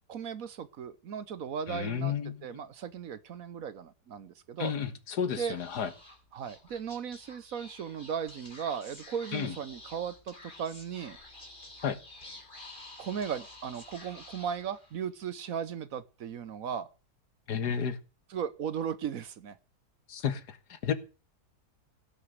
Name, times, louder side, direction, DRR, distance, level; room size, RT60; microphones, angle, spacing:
voice 1, 0.0-2.2 2.4-4.7 5.4-5.6 6.3-11.2 13.0-16.9 18.3-19.6, right 7 dB, 60° right, 1.2 m, -36 dB
voice 2, 1.7-2.6 4.6-5.9 9.3-9.5 11.8-12.0 17.5-18.0 20.1-20.9, left 7 dB, 75° left, 1.9 m, -32 dB
Speech / Whispering, 5.3-15.1, left 2 dB, 30° left, 3.5 m, -50 dB
16.5 x 6.5 x 8.0 m
omnidirectional pair, 1.7 m